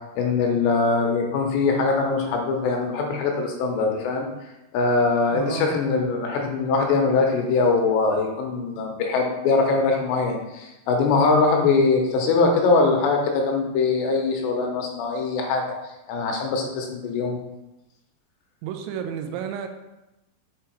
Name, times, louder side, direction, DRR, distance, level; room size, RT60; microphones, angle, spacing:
voice 1, 0.2-4.3 4.7-15.6 16.1-17.4, left 4 dB, 80° left, 1 dB, 3.0 m, -22 dB
voice 2, 5.3-5.8 18.6-19.7, right 8 dB, 85° right, 6 dB, 2.9 m, -31 dB
7.0 x 4.9 x 4.5 m, 0.96 s
omnidirectional pair, 5.3 m